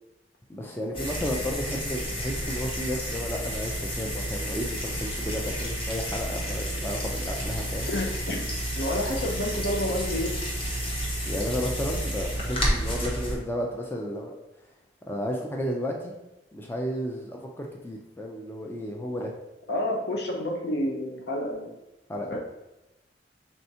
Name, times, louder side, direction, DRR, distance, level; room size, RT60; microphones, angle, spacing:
voice 1, 0.5-7.9 11.2-14.3 15.1-16.1 16.5-19.3 22.1-22.4, equal, 10° left, 0 dB, 0.4 m, -33 dB
sound 1, 0.9-13.4, equal, 30° left, 0.9 m, -31 dB
voice 2, 7.9-8.4 8.7-10.3 19.7-21.7 22.3-22.4, left 1 dB, 70° left, 1 dB, 0.7 m, -29 dB
4.4 x 3.4 x 2.8 m, 0.97 s
head